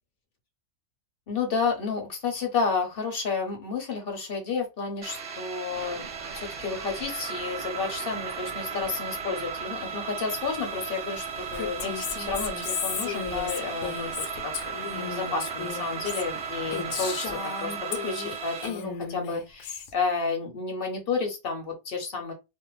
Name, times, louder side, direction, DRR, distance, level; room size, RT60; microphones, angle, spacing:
voice 1, 1.3-11.3 11.5-14.5 14.9-22.3, left 4 dB, 55° left, 3 dB, 0.7 m, -31 dB
sound 1, 5.0-18.7, right 6 dB, 65° right, 0.6 m, -36 dB
sound 2, 5.7-17.4, right 3 dB, 45° right, 1.0 m, -46 dB
Female speech woman speaking, 11.5-18.4 18.6-19.9, left 7 dB, 85° left, 1.1 m, -34 dB
2.5 x 2.1 x 3.0 m, 0.25 s
omnidirectional pair, 1.5 m